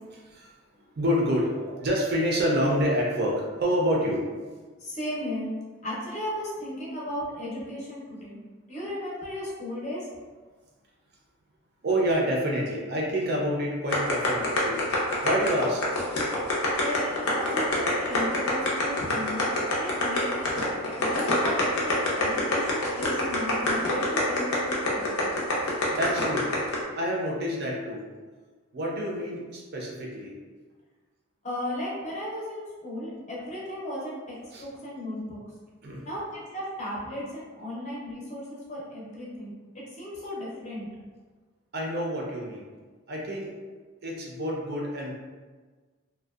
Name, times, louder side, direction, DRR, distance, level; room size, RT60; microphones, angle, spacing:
voice 1, 1.0-4.3 11.8-14.9 15.2-15.9 22.5-22.9 25.7-26.5 27.0-28.1 28.7-30.3 34.5-34.6 35.8-36.1 41.7-42.7 43.1-43.5 44.0-45.1, equal, 50° right, -2 dB, 0.4 m, -28 dB
voice 2, 4.8-5.5 5.8-8.4 8.7-10.1 16.8-25.1 31.4-35.4 36.0-40.9, equal, 35° left, -6 dB, 0.6 m, -35 dB
sound 1, 13.9-26.8, left 2 dB, 90° left, 0.6 m, -25 dB
2.6 x 2.1 x 2.3 m, 1.4 s
head